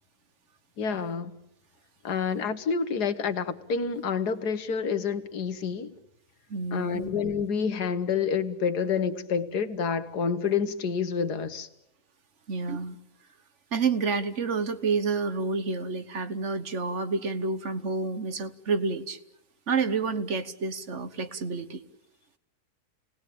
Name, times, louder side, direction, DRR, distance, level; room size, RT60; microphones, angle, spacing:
voice 1, 0.8-1.3 2.0-5.9 6.7-11.7, left 6 dB, 85° left, 1.9 m, -28 dB
voice 2, 6.5-7.1 12.5-13.0 13.7-19.2 19.7-21.8, right 4 dB, 50° right, 1.4 m, -29 dB
29.5 x 19.5 x 8.6 m
omnidirectional pair, 1.7 m